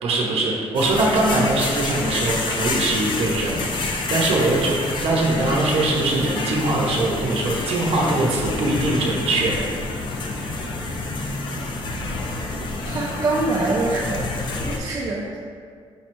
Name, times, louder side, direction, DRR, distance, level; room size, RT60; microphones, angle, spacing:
voice 1, 0.0-4.7 5.0-9.8, right 2 dB, 65° right, -2 dB, 0.7 m, -22 dB
sound 1, 0.7-14.8, left 2 dB, 45° left, 0.4 m, -28 dB
voice 2, 12.8-15.4, right 2 dB, 35° right, -5 dB, 0.4 m, -25 dB
5.3 x 3.2 x 2.9 m, 2.1 s
cardioid pair, 160°, 11 cm